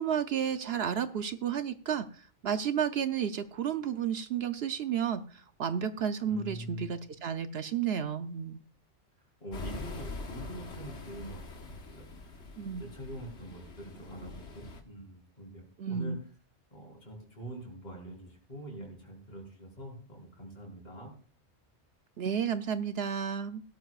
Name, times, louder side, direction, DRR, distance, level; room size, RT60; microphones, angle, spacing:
voice 1, 0.0-8.6 12.6-12.9 15.8-16.2 22.2-23.6, right 8 dB, 65° right, 9 dB, 0.9 m, -32 dB
voice 2, 6.2-6.8 9.4-12.3 12.8-16.2 16.7-21.1, right 1 dB, 40° left, -2 dB, 4.1 m, -45 dB
sound 1, 9.5-14.8, left 3 dB, 75° left, 1.6 m, -43 dB
16.5 x 12.5 x 2.4 m, 0.39 s
omnidirectional pair, 1.2 m